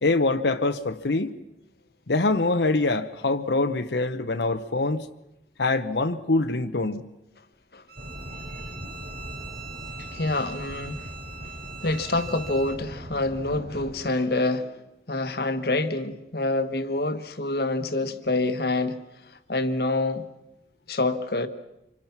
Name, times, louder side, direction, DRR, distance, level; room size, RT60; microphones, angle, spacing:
voice 1, 0.0-1.3 2.1-5.1 5.6-7.1, left 2 dB, 80° left, 1.0 m, -24 dB
Bowed string instrument, 7.9-12.8, right 5 dB, 60° right, 2.1 m, -42 dB
sound 1, 8.0-13.9, equal, 80° right, 5.0 m, -40 dB
voice 2, 10.0-11.1 11.8-14.7 15.1-19.0 19.5-20.3 20.9-21.5, left 2 dB, 65° left, 1.4 m, -26 dB
27.0 x 24.5 x 6.0 m
head